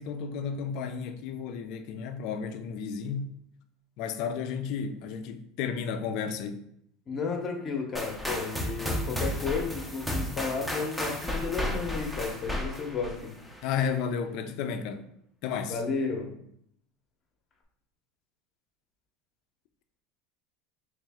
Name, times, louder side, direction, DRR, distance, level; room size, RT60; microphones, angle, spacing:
voice 1, 0.0-3.4 4.0-6.7 13.6-15.1 15.4-15.8, left 6 dB, 60° left, 0.4 m, -33 dB
voice 2, 7.1-13.3 15.7-16.3, left 4 dB, 35° left, 0.8 m, -33 dB
sound 1, 7.9-13.8, left 1 dB, ahead, 0.6 m, -33 dB
3.3 x 3.2 x 3.5 m
supercardioid pair, 130°, 0 cm